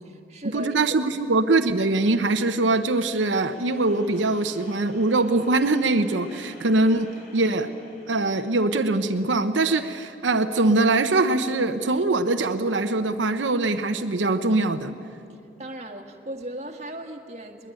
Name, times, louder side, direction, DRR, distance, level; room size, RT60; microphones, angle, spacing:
voice 1, 0.0-1.0 15.3-17.7, right 1 dB, 35° right, 4 dB, 1.7 m, -37 dB
voice 2, 0.5-7.7 8.1-14.9, right 2 dB, 90° right, 7 dB, 0.9 m, -22 dB
sound 1, 1.6-9.8, equal, 45° left, 4.7 m, -49 dB
21.5 x 20.5 x 9.1 m, 2.6 s
head